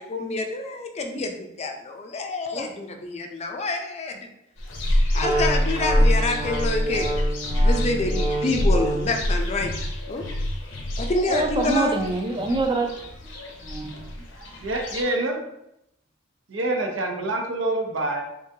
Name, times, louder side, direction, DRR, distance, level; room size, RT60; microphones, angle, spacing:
voice 1, 0.0-4.3 5.1-7.1 7.6-9.7 10.1-10.2 10.6-12.0, left 2 dB, 35° left, 4 dB, 0.5 m, -27 dB
sound 1, 4.6-15.0, left 1 dB, 70° left, 0.8 m, -25 dB
Wind instrument woodwind instrument, 5.2-9.2, right 2 dB, 45° right, 1.1 m, -29 dB
voice 2, 11.2-14.0, right 2 dB, 25° right, 3 dB, 0.4 m, -26 dB
voice 3, 14.6-15.4 16.5-18.2, right 2 dB, 85° right, 2 dB, 0.8 m, -26 dB
3.8 x 3.5 x 2.7 m, 0.82 s
head